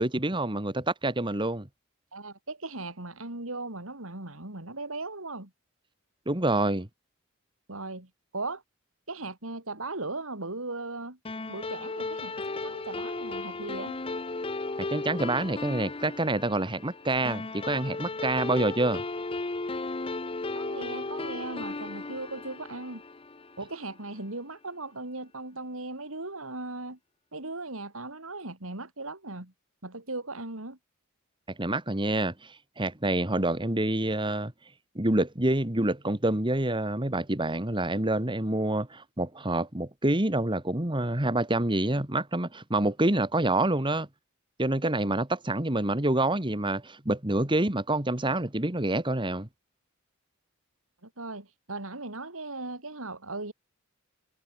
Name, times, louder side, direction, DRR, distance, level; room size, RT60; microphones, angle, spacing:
voice 1, 0.0-1.7 6.3-6.9 14.8-19.0 31.6-34.5 35.0-44.1 44.6-49.5, right 2 dB, 25° right, 2.0 m, -27 dB
voice 2, 2.1-5.5 7.7-8.6 9.1-11.2 11.5-14.0 20.5-23.0 23.6-27.0 27.3-29.5 29.8-30.8 51.0-53.5, right 2 dB, 70° right, 4.2 m, -38 dB
sound 1, 11.2-24.0, left 3 dB, 25° left, 0.9 m, -35 dB
head